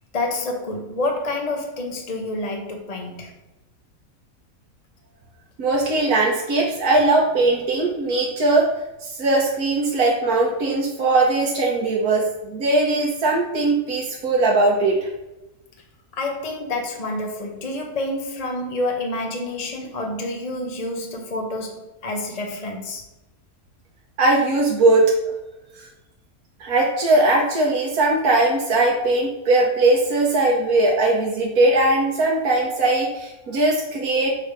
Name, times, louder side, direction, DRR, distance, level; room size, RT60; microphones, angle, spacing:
voice 1, 0.1-3.3 16.1-23.0, left 2 dB, 30° left, 2 dB, 0.8 m, -28 dB
voice 2, 5.6-8.7 9.2-15.1 24.2-25.3 26.6-34.3, right 2 dB, 80° right, -2 dB, 1.5 m, -19 dB
6.9 x 3.3 x 6.1 m, 0.99 s
omnidirectional pair, 1.5 m